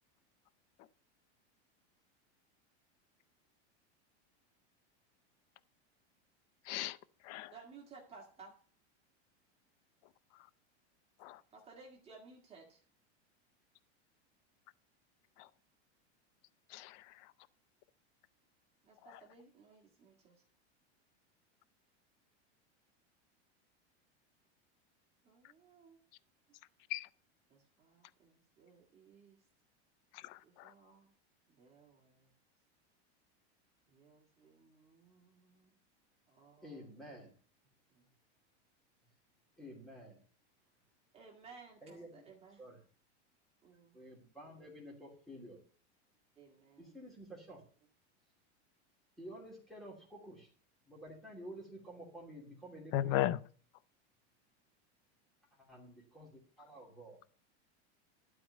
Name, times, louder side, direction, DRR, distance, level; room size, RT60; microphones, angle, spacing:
voice 1, 6.7-7.0 7.2-7.5 11.2-11.4 15.4-15.5 16.7-17.3 19.1-19.2 26.9-27.1 30.1-30.7 52.9-53.4, left 13 dB, 40° left, 0.5 m, -36 dB
voice 2, 7.5-8.5 11.5-12.8 18.8-20.4 25.2-26.0 27.5-29.4 30.4-31.1 31.5-32.3 33.9-35.8 36.3-36.9 37.9-38.2 41.1-42.6 43.6-44.0 46.4-47.0, right 4 dB, 20° right, 2.0 m, -58 dB
voice 3, 36.6-37.3 39.6-40.2 41.8-42.2 42.6-42.8 43.9-45.6 46.8-47.6 49.2-50.5 50.9-53.2 55.6-57.2, equal, ahead, 2.8 m, -51 dB
12.0 x 4.8 x 8.2 m
supercardioid pair, 160°, 34 cm